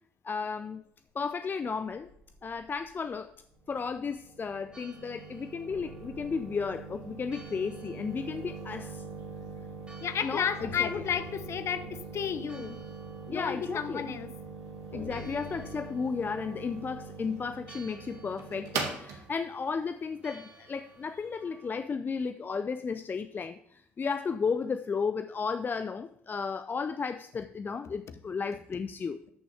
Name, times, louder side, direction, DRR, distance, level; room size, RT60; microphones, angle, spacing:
voice 1, 0.2-0.8 1.2-2.1 2.4-3.3 3.7-9.0 10.2-10.9 13.3-14.1 14.9-29.2, left 5 dB, 30° left, 0.4 m, -34 dB
sound 1, 1.8-3.8 4.1-4.4 4.8-4.9 5.7-9.5 9.9-10.0 10.6-15.8, left 3 dB, 90° left, 4.1 m, -50 dB
sound 2, 3.7-21.3, right 5 dB, 65° right, 1.4 m, -43 dB
Church bell, 4.7-21.8, right 4 dB, 15° right, 2.5 m, -57 dB
voice 2, 10.0-12.8 13.3-14.3, left 8 dB, 45° left, 0.8 m, -32 dB
12.5 x 6.0 x 3.4 m
figure-of-eight pair, 50°, 6 cm